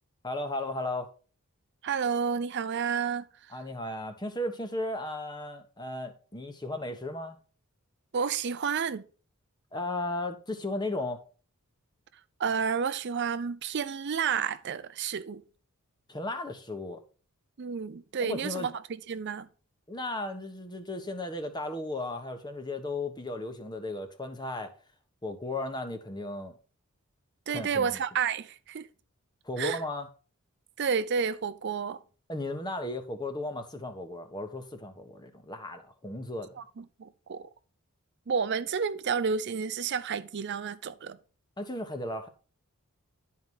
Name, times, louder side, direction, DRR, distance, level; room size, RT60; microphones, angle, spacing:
voice 1, 0.2-1.1 3.5-7.4 9.7-11.2 16.1-17.0 18.2-18.7 19.9-24.7 25.2-26.5 27.5-28.0 29.4-30.1 32.3-36.5 41.6-42.3, left 2 dB, 20° left, 1.2 m, -35 dB
voice 2, 1.8-3.2 8.1-9.0 12.4-15.4 17.6-18.7 19.1-19.5 27.5-28.9 29.6-29.8 30.8-32.0 36.6-37.4 38.3-41.2, right 6 dB, 50° right, 0.5 m, -30 dB
11.5 x 4.8 x 5.4 m
head